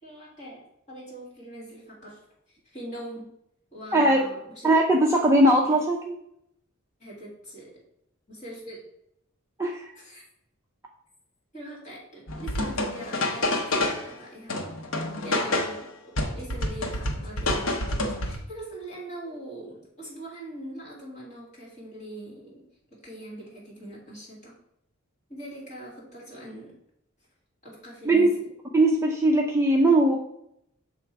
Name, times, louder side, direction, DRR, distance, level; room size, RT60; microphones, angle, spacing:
voice 1, 0.0-0.6 0.9-2.2 2.7-3.3 3.7-4.7 7.0-7.7 8.3-8.8 10.0-10.2 11.5-14.7 15.2-22.6 22.9-24.5 25.3-26.7 27.6-28.5, right 1 dB, 35° left, -5 dB, 2.3 m, -42 dB
voice 2, 3.9-4.2 4.6-6.1 9.6-9.9 28.1-28.3 28.7-30.2, right 1 dB, 15° right, 0 dB, 0.4 m, -20 dB
sound 1, 12.3-14.1 14.5-15.8 16.2-18.4, left 2 dB, 65° left, 0.9 m, -28 dB
6.7 x 3.1 x 4.6 m, 0.77 s
head